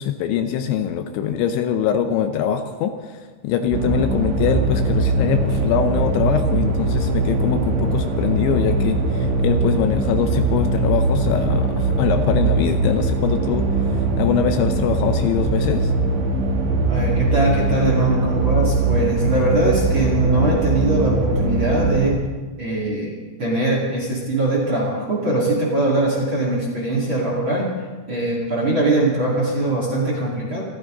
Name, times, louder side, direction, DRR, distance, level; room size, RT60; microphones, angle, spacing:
voice 1, 0.0-15.9, left 8 dB, 80° left, 7 dB, 2.9 m, -23 dB
sound 1, 3.7-22.1, right 2 dB, 65° right, 3.9 m, -21 dB
voice 2, 16.9-22.2 22.6-27.8 28.1-30.6, right 2 dB, 35° right, -2 dB, 2.2 m, -21 dB
26.5 x 13.5 x 3.9 m, 1.4 s
omnidirectional pair, 5.7 m